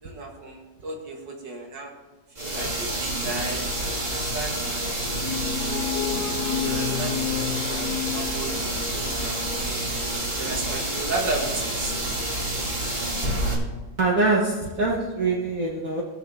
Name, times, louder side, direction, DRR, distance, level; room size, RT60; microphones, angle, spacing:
voice 1, 0.0-1.9 2.3-3.6 4.0-6.0 6.6-8.5 8.9-9.7 10.3-11.9, right 3 dB, 75° right, 0 dB, 2.4 m, -34 dB
small hi-speed electric fan, 2.4-13.5, right 1 dB, 25° right, 1.9 m, -28 dB
sound 1, 5.2-9.0, left 10 dB, 70° left, 1.3 m, -30 dB
voice 2, 14.0-16.0, right 2 dB, 50° right, -3 dB, 1.5 m, -23 dB
18.5 x 6.4 x 3.6 m, 1.2 s
omnidirectional pair, 1.9 m